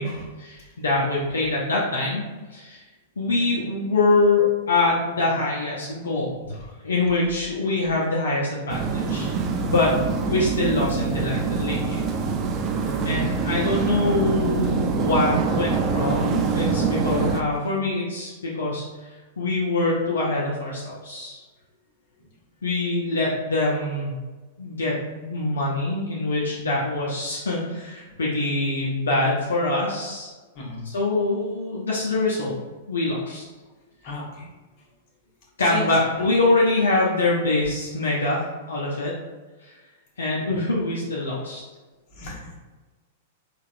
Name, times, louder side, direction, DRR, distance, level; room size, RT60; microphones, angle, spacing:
voice 1, 0.4-2.2 2.5-2.8 3.2-9.3 9.6-9.9 10.2-12.0 13.0-18.8 19.4-21.4 22.6-24.1 24.6-30.3 30.8-32.5 32.9-33.4 35.6-39.1 39.6-39.7 40.2-41.6, left 2 dB, 80° left, -5 dB, 0.6 m, -24 dB
sound 1, 8.7-17.4, right 5 dB, 30° right, 0.4 m, -25 dB
voice 2, 12.8-13.2 30.5-30.8 34.0-34.5 35.6-35.9 42.1-42.6, left 1 dB, 45° left, -4 dB, 1.2 m, -35 dB
3.9 x 2.4 x 2.5 m, 1.3 s
hypercardioid pair, 105°, 0 cm